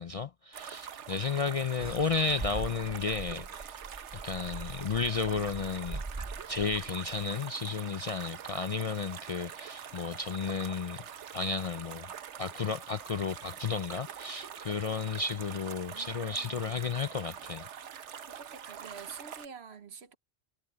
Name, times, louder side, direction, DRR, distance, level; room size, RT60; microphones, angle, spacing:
voice 1, 0.0-3.8 4.2-6.0 6.5-11.0 11.3-12.1 12.4-17.7, left 4 dB, 50° left, 0.4 m, -33 dB
sound 1, 0.5-19.5, right 8 dB, 85° right, 1.2 m, -45 dB
sound 2, 1.8-7.4, right 3 dB, 25° right, 0.4 m, -42 dB
voice 2, 15.9-16.9 18.3-20.2, right 6 dB, 65° right, 1.4 m, -48 dB
omnidirectional pair, 1.2 m